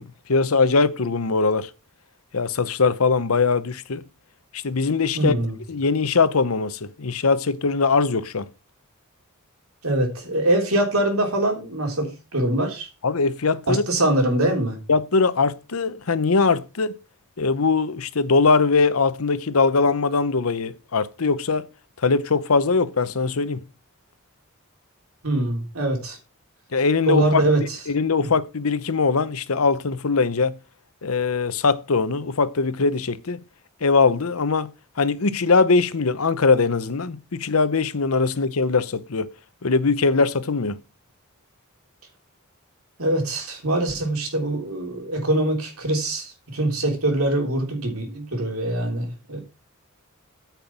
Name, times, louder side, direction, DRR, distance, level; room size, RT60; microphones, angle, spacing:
voice 1, 0.0-1.7 2.3-4.0 4.5-5.4 5.7-8.5 13.0-13.8 14.9-17.0 17.4-21.7 22.0-23.6 26.7-27.4 27.9-30.6 31.0-33.4 33.8-34.7 35.0-39.3 39.6-40.8, left 4 dB, 80° left, 0.9 m, -21 dB
voice 2, 5.1-5.6 9.8-12.9 13.7-14.8 25.2-26.2 27.0-27.6 28.2-28.3 43.0-49.4, right 1 dB, 80° right, 3.4 m, -23 dB
9.1 x 5.9 x 5.8 m
head